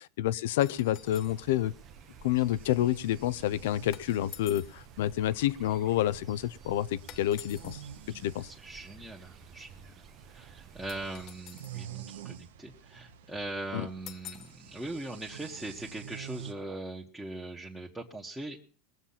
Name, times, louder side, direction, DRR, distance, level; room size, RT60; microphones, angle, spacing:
voice 1, 0.2-1.7 2.2-7.8 8.2-8.5 13.7-13.9, left 13 dB, 80° left, 0.5 m, -28 dB
sound 1, 0.6-1.4 3.9-4.8 7.1-7.8 10.9-11.8 14.1-14.6, left 14 dB, 50° left, 0.8 m, -48 dB
sound 2, 0.6-16.5, right 9 dB, 90° right, 1.1 m, -50 dB
sound 3, 1.0-11.3, right 6 dB, 25° right, 0.9 m, -53 dB
voice 2, 8.4-18.6, right 2 dB, 5° right, 1.5 m, -41 dB
20.5 x 7.4 x 5.7 m
supercardioid pair, 130°, 0 cm